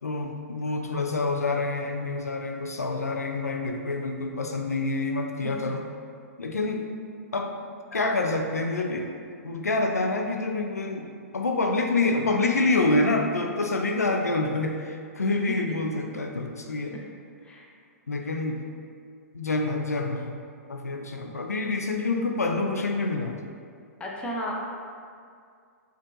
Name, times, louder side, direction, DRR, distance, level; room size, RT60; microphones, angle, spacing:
voice 1, 0.0-5.8 6.4-6.9 7.3-7.6 7.9-9.1 9.4-11.1 11.3-17.0 18.1-18.6 19.3-20.4 20.7-23.4, left 2 dB, 80° left, 3 dB, 0.3 m, -27 dB
voice 2, 24.0-24.5, equal, 10° left, -2 dB, 0.5 m, -34 dB
5.2 x 2.6 x 2.6 m, 2.2 s
figure-of-eight pair, 110°, 8 cm